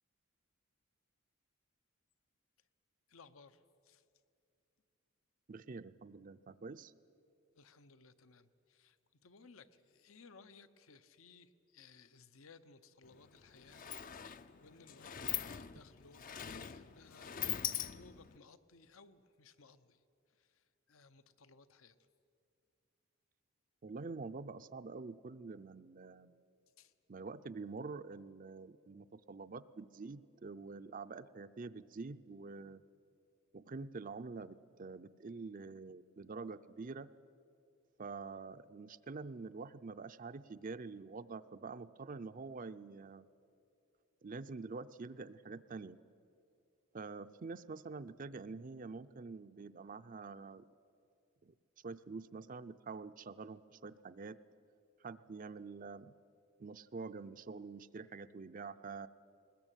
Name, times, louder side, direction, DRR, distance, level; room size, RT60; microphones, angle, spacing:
voice 1, 3.1-4.0 7.5-9.0 9.2-13.9 14.1-17.4 17.7-20.0 20.3-22.0 26.8-26.9, left 4 dB, 75° left, 12 dB, 0.9 m, -61 dB
voice 2, 5.5-6.9 23.8-26.3 27.1-32.8 33.5-37.1 38.0-43.3 44.2-46.0 46.9-50.6 51.4-51.5 51.8-54.4 55.0-56.1 56.6-59.1, right 4 dB, 40° right, 11 dB, 0.5 m, -46 dB
Sliding door, 13.0-13.2 13.4-18.4, left 10 dB, 40° left, 0.5 m, -42 dB
21.0 x 20.5 x 9.0 m, 2.6 s
head